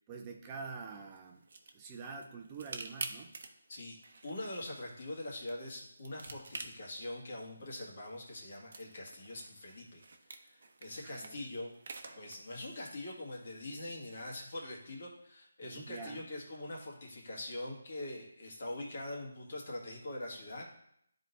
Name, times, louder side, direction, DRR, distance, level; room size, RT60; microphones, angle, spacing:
voice 1, 0.1-1.5 1.7-3.3 11.0-11.4 15.6-16.3, right 4 dB, 20° right, 3 dB, 0.6 m, -46 dB
sound 1, 0.9-13.9, right 3 dB, 55° right, 0.9 m, -50 dB
voice 2, 4.2-10.0 10.3-11.7 12.2-20.7, left 1 dB, 50° left, -2 dB, 1.9 m, -43 dB
10.5 x 3.9 x 2.7 m, 0.73 s
figure-of-eight pair, 165°, 0 cm